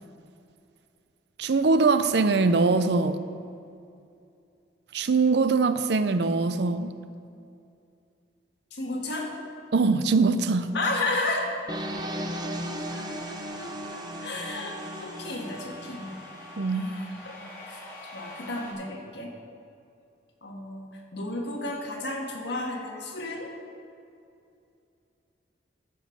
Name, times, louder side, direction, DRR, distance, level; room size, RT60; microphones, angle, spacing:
voice 1, 1.4-3.2 4.9-6.9 9.7-10.7 16.6-16.9, right 4 dB, 65° right, 11 dB, 0.5 m, -22 dB
voice 2, 8.7-9.3 10.7-11.5 12.7-16.1 16.7-17.4 17.6-17.8 18.1-19.3 20.4-23.5, left 2 dB, 70° left, 0 dB, 1.7 m, -33 dB
sound 1, 11.7-18.7, equal, 15° left, 2.2 m, -44 dB
sound 2, 11.7-16.6, equal, 25° right, 0.7 m, -36 dB
14.0 x 5.5 x 6.4 m, 2.5 s
head